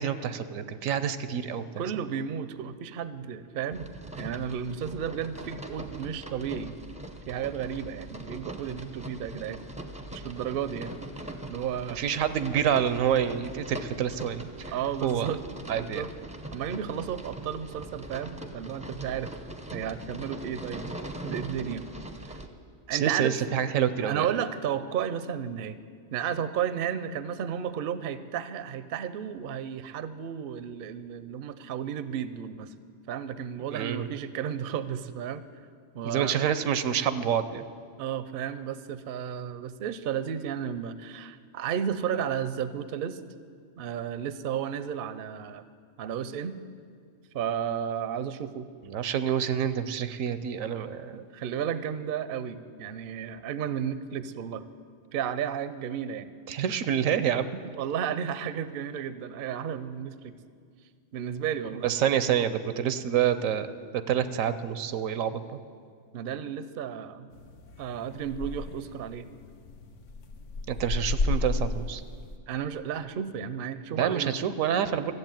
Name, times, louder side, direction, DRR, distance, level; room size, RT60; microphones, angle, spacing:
voice 1, 0.0-1.6 12.0-14.5 15.0-15.4 15.7-16.0 22.9-24.3 33.7-34.1 36.0-37.6 48.9-51.2 56.5-57.5 61.8-63.7 64.1-65.4 70.7-72.0 73.9-75.1, right 9 dB, 85° right, 13 dB, 1.1 m, -27 dB
voice 2, 1.8-3.9 4.2-6.8 7.3-9.6 10.1-10.9 11.5-12.0 14.7-15.4 15.7-16.1 16.5-19.3 19.7-20.9 21.2-21.9 22.9-23.4 24.0-25.8 26.1-32.7 33.1-35.4 35.9-36.5 38.0-43.2 43.8-45.6 46.0-46.6 47.3-48.7 51.1-54.6 55.1-56.3 57.7-60.3 61.1-61.9 66.1-67.3 67.8-69.3 72.5-74.4 74.9-75.0, right 8 dB, 55° right, 14 dB, 0.6 m, -33 dB
sound 1, 3.7-22.5, right 1 dB, 5° right, 0.6 m, -41 dB
sound 2, 67.3-72.4, left 3 dB, 70° left, 1.2 m, -33 dB
13.5 x 7.8 x 9.0 m, 2.2 s
omnidirectional pair, 1.4 m